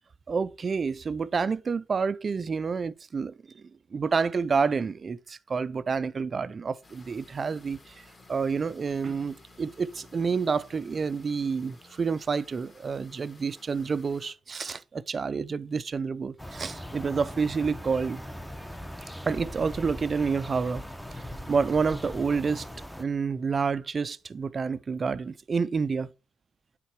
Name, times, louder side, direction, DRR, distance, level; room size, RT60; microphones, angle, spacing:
voice 1, 0.3-3.6 3.9-18.2 19.2-20.8 21.1-22.7 23.0-26.1, right 5 dB, 40° right, 0.4 m, -29 dB
sound 1, 6.8-14.3, left 2 dB, 30° left, 2.3 m, -54 dB
sound 2, 16.4-23.0, equal, ahead, 0.7 m, -40 dB
9.2 x 3.7 x 4.6 m
cardioid pair, 90°, 0 cm